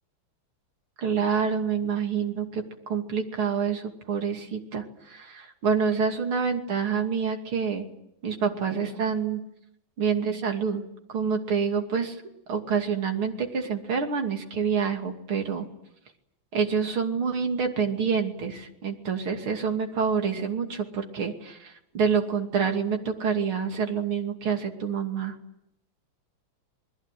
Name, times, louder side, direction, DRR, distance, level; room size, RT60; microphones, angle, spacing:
voice 1, 1.0-7.9 8.2-9.4 10.0-10.8 11.1-12.2 12.5-15.7 16.5-25.4, right 6 dB, 75° right, 4 dB, 3.5 m, -27 dB
28.0 x 21.0 x 9.3 m, 0.80 s
omnidirectional pair, 2.4 m